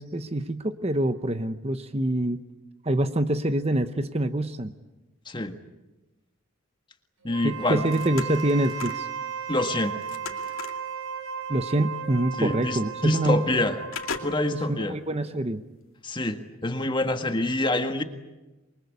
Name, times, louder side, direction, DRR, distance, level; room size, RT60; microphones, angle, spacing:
voice 1, 0.0-2.4 2.8-4.7 7.4-9.1 11.5-13.4 14.5-15.6, right 1 dB, 30° right, 10 dB, 0.9 m, -26 dB
voice 2, 7.2-7.8 9.5-10.0 12.4-13.8 14.2-15.0 16.0-18.0, left 1 dB, 20° left, 7 dB, 1.7 m, -26 dB
Wind instrument woodwind instrument, 7.3-14.8, right 7 dB, 70° right, 3.4 m, -35 dB
sound 1, 7.6-9.1 9.5-10.9 12.0-12.1 12.5-12.6 13.1-13.6 13.9-14.7 15.2-15.3, left 5 dB, 75° left, 2.5 m, -38 dB
27.5 x 23.5 x 8.4 m, 1.1 s
head